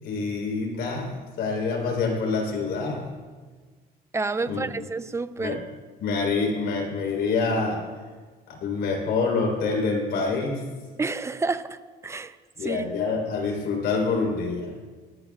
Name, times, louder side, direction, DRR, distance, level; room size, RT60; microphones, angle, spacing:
voice 1, 0.0-3.1 4.5-4.8 5.4-5.6 6.0-7.8 8.6-10.7 12.6-14.7, left 4 dB, 75° left, 1 dB, 3.9 m, -26 dB
voice 2, 4.1-5.6 11.0-11.8 12.0-12.3 12.6-12.8, right 3 dB, 15° right, 12 dB, 0.6 m, -29 dB
19.0 x 14.0 x 2.4 m, 1.5 s
cardioid pair, 110°, 17 cm